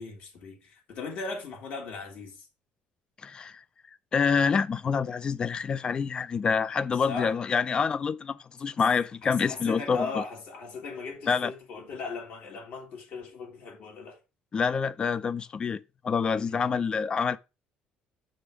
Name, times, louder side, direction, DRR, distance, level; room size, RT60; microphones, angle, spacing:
voice 1, 0.0-2.5 7.1-7.4 9.2-14.2 16.5-16.7, left 4 dB, 60° left, 2.9 m, -38 dB
voice 2, 3.2-3.6 4.1-10.2 11.3-11.5 14.5-17.4, left 6 dB, 25° left, 0.4 m, -27 dB
6.9 x 5.2 x 4.9 m
cardioid pair, 150°, 3 cm